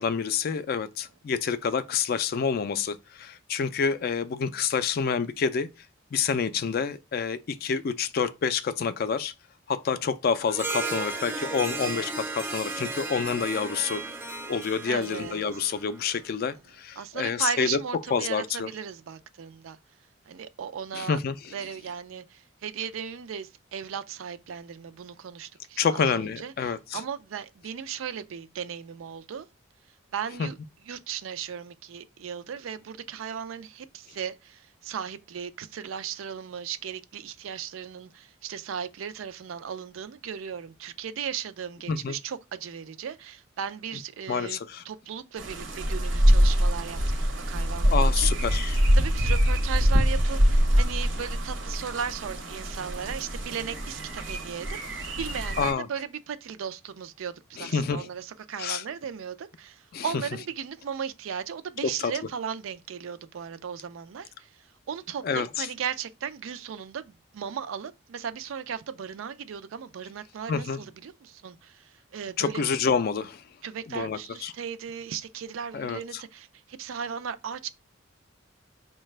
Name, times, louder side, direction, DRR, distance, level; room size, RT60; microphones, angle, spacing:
voice 1, 0.0-5.7 6.1-9.3 9.7-14.0 14.5-17.8 18.1-18.7 20.9-21.5 25.8-27.0 30.4-30.5 41.9-42.2 44.3-44.8 47.8-48.8 55.6-55.9 57.6-58.1 58.6-58.8 59.9-60.2 61.8-62.1 65.2-65.7 70.5-70.8 72.4-73.4 73.9-74.5 75.7-76.0, left 6 dB, 50° left, 0.3 m, -28 dB
Harp, 10.5-16.2, right 3 dB, 10° right, 0.5 m, -35 dB
voice 2, 14.9-15.4 17.0-19.8 20.3-21.2 21.5-29.5 30.1-30.6 30.9-44.6 44.9-48.3 48.9-72.6 73.6-77.7, right 7 dB, 85° right, 0.4 m, -36 dB
sound 1, 45.4-55.7, equal, 65° right, 0.7 m, -24 dB
4.7 x 2.2 x 3.2 m
head